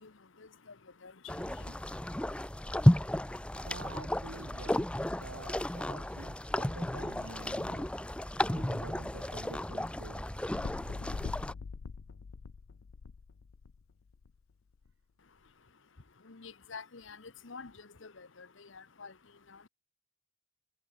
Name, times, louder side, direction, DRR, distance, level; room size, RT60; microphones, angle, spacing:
sound 1, 1.3-11.5, left 1 dB, 5° left, 0.4 m, -32 dB
voice 1, 3.7-7.9 8.4-10.2, right 2 dB, 80° right, 2.0 m, -48 dB
sound 2, 10.5-14.3 14.9-15.0, left 5 dB, 90° left, 0.5 m, -43 dB
voice 2, 16.3-17.2 17.4-17.7 18.0-18.5 18.7-19.1, left 5 dB, 70° left, 1.1 m, -47 dB
head